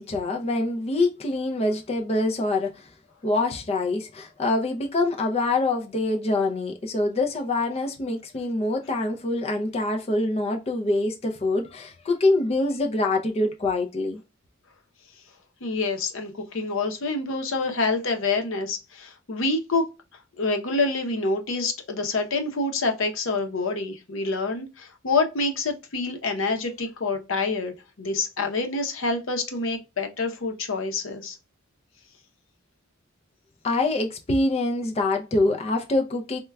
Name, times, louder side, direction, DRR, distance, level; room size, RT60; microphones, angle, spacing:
voice 1, 0.0-2.9 3.2-14.2 33.6-36.4, left 2 dB, 30° left, 0.4 m, -25 dB
voice 2, 15.6-19.8 20.4-31.4, left 3 dB, 75° left, 0.7 m, -27 dB
4.3 x 2.2 x 2.2 m
head